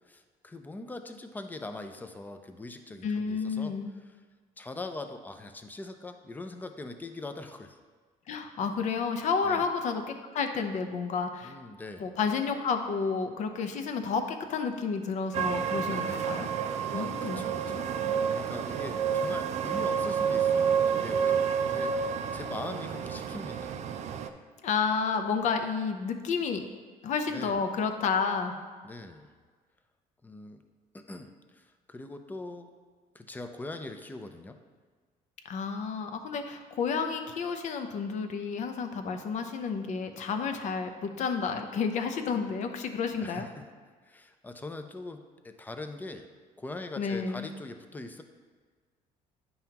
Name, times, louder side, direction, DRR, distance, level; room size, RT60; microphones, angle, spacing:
voice 1, 0.0-4.2 4.6-7.8 9.4-9.7 11.4-12.1 15.8-17.1 17.4-23.7 24.2-24.3 27.3-27.6 28.8-29.3 30.2-30.6 30.9-32.7 33.1-34.6 43.1-43.7 44.0-46.3 46.6-48.2, left 2 dB, 10° left, 7 dB, 0.5 m, -42 dB
voice 2, 3.0-3.9 8.3-10.0 10.3-11.5 12.0-16.5 16.9-17.4 24.6-26.6 27.0-28.5 35.4-43.5 47.0-47.5, left 5 dB, 55° left, 6 dB, 0.7 m, -30 dB
sound 1, 15.3-24.3, right 7 dB, 50° right, 0.5 m, -29 dB
9.2 x 5.5 x 2.9 m, 1.5 s
cardioid pair, 120°, 15 cm